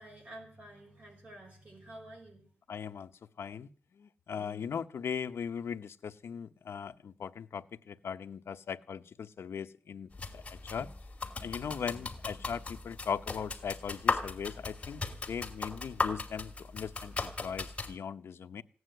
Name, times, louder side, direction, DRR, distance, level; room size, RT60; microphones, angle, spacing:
voice 1, 0.0-2.5, right 1 dB, 35° right, 2 dB, 5.4 m, -50 dB
voice 2, 2.7-3.1 3.4-3.7 4.0-10.9 11.4-15.0 15.3-18.6, left 7 dB, 60° left, 8 dB, 0.9 m, -39 dB
sound 1, 10.1-17.9, left 3 dB, 25° left, 2.6 m, -37 dB
17.5 x 9.7 x 8.1 m, 0.43 s
wide cardioid pair, 170°, 5 cm